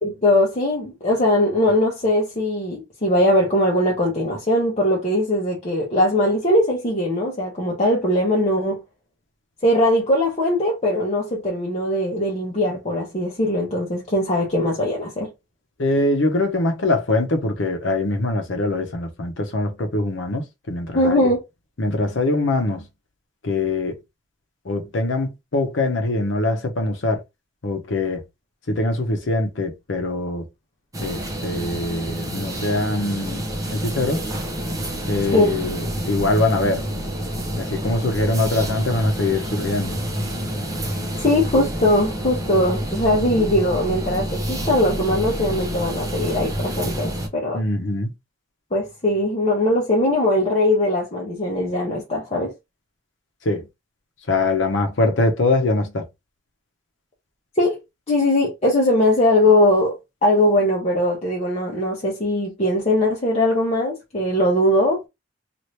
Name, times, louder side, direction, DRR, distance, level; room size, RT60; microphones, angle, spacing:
voice 1, 0.0-8.8 9.6-15.3 20.9-21.4 35.3-35.5 41.2-47.6 48.7-52.5 57.6-57.8 58.1-60.0 60.2-65.1, left 1 dB, 35° left, 0.9 m, -20 dB
voice 2, 15.8-21.3 21.8-22.8 23.4-24.0 24.6-27.2 27.6-28.2 28.7-30.5 31.0-34.2 35.1-36.9 37.5-40.0 47.5-48.1 53.4-53.7 54.3-56.0, left 2 dB, 75° left, 0.8 m, -23 dB
sound 1, 30.9-47.3, equal, 20° right, 0.7 m, -28 dB
2.9 x 2.5 x 3.1 m
head